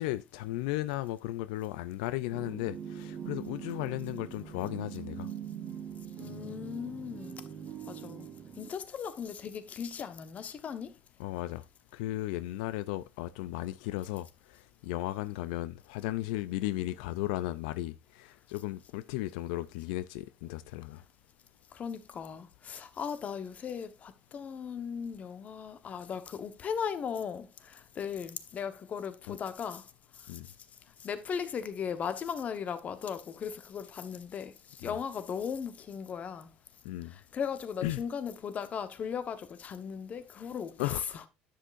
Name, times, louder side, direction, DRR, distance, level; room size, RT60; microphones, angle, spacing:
voice 1, 0.0-5.3 11.2-11.6 11.9-21.0 29.3-29.4 30.3-30.5 34.8-35.0 36.8-37.2 37.8-38.0 40.8-41.3, left 16 dB, 90° left, 0.4 m, -35 dB
sound 1, 2.3-8.7, right 8 dB, 45° right, 1.2 m, -42 dB
voice 2, 6.2-7.4 7.8-8.3 8.6-10.9 21.7-29.9 30.1-30.5 31.0-36.5 37.1-41.2, left 7 dB, 35° left, 1.1 m, -37 dB
10.0 x 7.7 x 2.5 m
cardioid pair, 120°, 4 cm